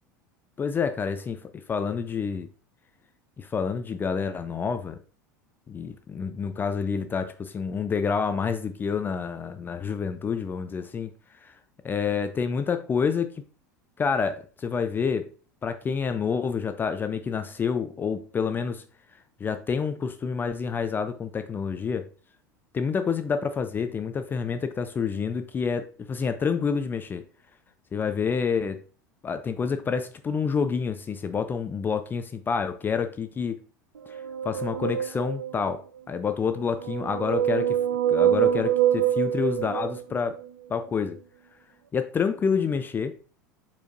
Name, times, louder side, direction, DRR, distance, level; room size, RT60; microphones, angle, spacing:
voice 1, 0.6-1.4 1.7-2.5 3.4-5.0 5.7-11.1 11.4-11.5 11.8-13.4 14.0-15.3 15.6-18.8 19.4-22.0 22.7-27.2 27.9-28.8 29.2-33.6 34.1-34.2 34.5-37.8 38.1-40.4 40.7-41.2 41.9-43.2, left 6 dB, 20° left, 9 dB, 0.4 m, -28 dB
sound 1, 34.1-35.7 36.6-40.5, right 11 dB, 70° right, 0.4 m, -25 dB
4.4 x 4.4 x 2.5 m, 0.38 s
figure-of-eight pair, 75°, 10 cm